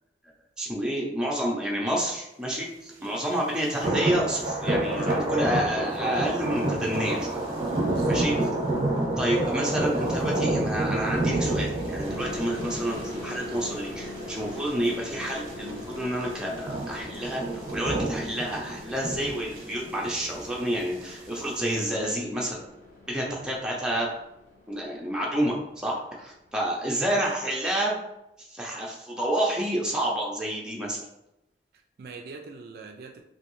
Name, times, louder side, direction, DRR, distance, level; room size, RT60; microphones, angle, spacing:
voice 1, 0.6-7.4 8.1-8.3 9.2-17.4 17.7-22.6 23.1-24.1 24.7-25.6 25.8-28.0 28.4-31.0, right 1 dB, 5° right, -3 dB, 0.5 m, -29 dB
sound 1, 3.2-3.3 3.7-21.8, right 1 dB, 25° right, 0.9 m, -29 dB
voice 2, 7.8-8.3 23.2-23.5 31.7-33.2, right 3 dB, 55° right, 4 dB, 0.3 m, -43 dB
sound 2, 12.0-25.5, left 1 dB, 45° left, 1.2 m, -41 dB
3.1 x 2.6 x 3.0 m, 0.87 s
head